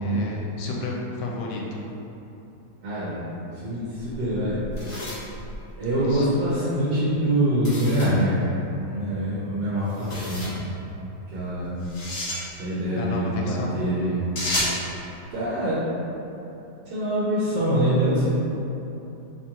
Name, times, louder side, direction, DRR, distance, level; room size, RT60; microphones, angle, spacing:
voice 1, 0.0-1.8 6.0-6.3 12.9-13.7, left 3 dB, 85° left, -2 dB, 1.2 m, -32 dB
voice 2, 2.8-3.2 3.6-4.6 5.8-10.7 11.3-11.9 12.6-14.3 15.3-15.8 16.8-18.3, right 1 dB, 85° right, -9 dB, 1.5 m, -24 dB
sound 1, 4.4-6.2 7.6-8.2 9.9-10.6 11.8-12.4 14.3-14.8, left 1 dB, 45° left, 1.2 m, -31 dB
3.4 x 2.9 x 3.5 m, 3.0 s
omnidirectional pair, 1.9 m